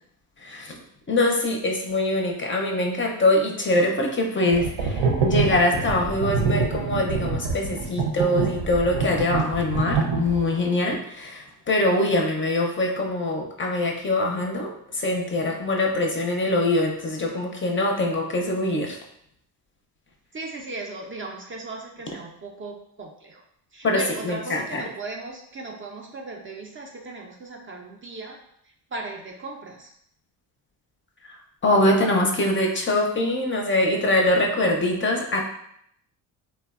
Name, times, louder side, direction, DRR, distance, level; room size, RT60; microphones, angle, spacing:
voice 1, 0.4-0.8 1.1-19.0 23.8-24.8 31.6-35.4, left 1 dB, 30° left, 1 dB, 0.4 m, -23 dB
sound 1, 4.5-10.6, right 5 dB, 70° right, 0.7 m, -25 dB
voice 2, 20.3-23.1 23.7-28.3 28.9-29.9, right 3 dB, 30° right, 1 dB, 0.4 m, -36 dB
3.2 x 2.1 x 2.3 m, 0.71 s
cardioid pair, 75°, 42 cm